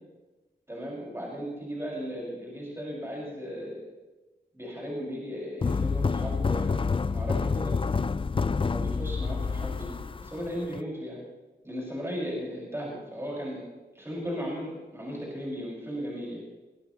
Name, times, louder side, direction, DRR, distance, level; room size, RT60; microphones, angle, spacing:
voice 1, 0.7-3.8 4.5-7.8 8.7-11.2 11.6-13.6 13.9-16.4, equal, 15° right, -4 dB, 5.9 m, -36 dB
sound 1, 5.6-10.8, left 4 dB, 30° left, 0.4 m, -28 dB
22.5 x 17.5 x 3.2 m, 1.1 s
wide cardioid pair, 105°, 17 cm